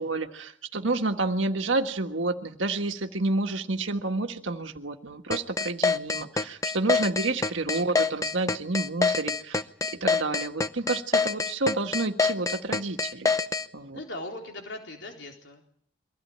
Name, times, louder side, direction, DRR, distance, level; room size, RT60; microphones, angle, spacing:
voice 1, 0.0-9.6 10.0-13.3 13.7-14.0, right 3 dB, 80° right, 5 dB, 1.6 m, -29 dB
sound 1, 5.3-13.7, left 4 dB, 15° left, 0.9 m, -25 dB
voice 2, 13.9-15.6, left 1 dB, 65° left, 2 dB, 4.0 m, -40 dB
24.0 x 16.5 x 8.7 m, 0.62 s
head